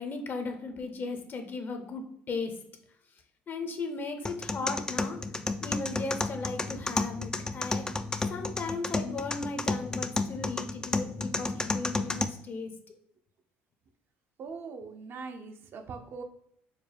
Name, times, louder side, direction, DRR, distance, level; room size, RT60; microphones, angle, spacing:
voice 1, 0.0-2.6 3.5-5.2 5.6-7.9 8.3-13.0, left 3 dB, 40° left, 6 dB, 0.7 m, -36 dB
sound 1, 4.3-12.2, left 3 dB, 15° left, 0.3 m, -32 dB
voice 2, 14.4-16.2, right 5 dB, 50° right, 6 dB, 0.5 m, -41 dB
4.4 x 2.1 x 3.3 m, 0.71 s
hypercardioid pair, 70°, 5 cm